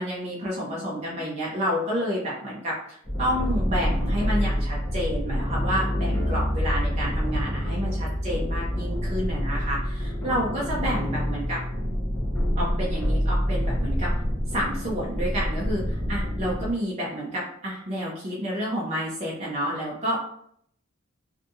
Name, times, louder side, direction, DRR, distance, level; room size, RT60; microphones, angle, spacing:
voice 1, 0.0-11.6 12.6-14.1 14.5-20.2, equal, 30° right, -5 dB, 0.5 m, -29 dB
sound 1, 3.1-16.7, equal, 15° left, 0.7 m, -27 dB
2.6 x 2.6 x 2.3 m, 0.68 s
head